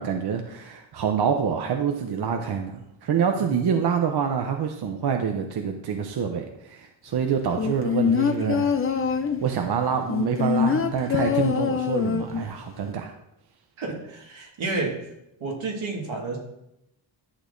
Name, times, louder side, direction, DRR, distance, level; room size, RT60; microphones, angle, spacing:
voice 1, 0.0-8.8 9.4-13.1, right 7 dB, 55° right, 5 dB, 0.7 m, -26 dB
sound 1, 7.6-9.5 10.1-12.5 12.8-12.9, left 7 dB, 30° left, 0.5 m, -24 dB
voice 2, 13.8-15.0 15.4-16.4, right 3 dB, 75° right, 0 dB, 1.9 m, -30 dB
11.0 x 6.1 x 2.6 m, 0.85 s
cardioid pair, 80°, 47 cm